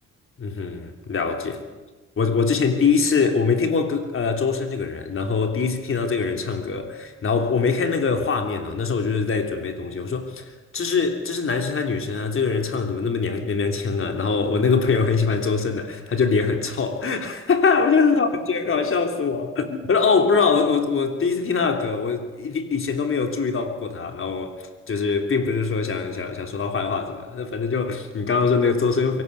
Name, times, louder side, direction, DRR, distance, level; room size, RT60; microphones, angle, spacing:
voice 1, 0.4-1.6 2.2-24.5 24.9-29.2, left 5 dB, 45° left, 3.4 m, -23 dB
23.0 x 17.5 x 7.1 m
cardioid pair, 90°, 30 cm